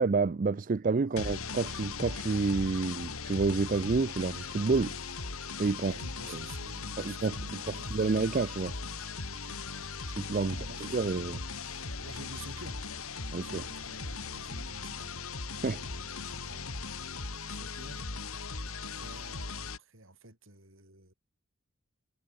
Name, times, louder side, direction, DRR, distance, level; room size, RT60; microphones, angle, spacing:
voice 1, 0.0-5.0 5.6-5.9 6.3-6.4 7.0-8.7 10.0-11.4 13.3-13.6 15.6-15.8, right 4 dB, 40° right, 0.4 m, -29 dB
sound 1, 1.2-19.8, left 4 dB, 80° left, 3.3 m, -39 dB
sound 2, 3.9-7.4 7.8-11.1 11.6-14.1, left 1 dB, 5° left, 7.0 m, -62 dB
voice 2, 5.8-8.0 9.3-11.4 12.0-12.9 13.2-15.2 15.7-16.7 17.3-18.1 18.8-21.1, right 2 dB, 65° right, 7.6 m, -51 dB
head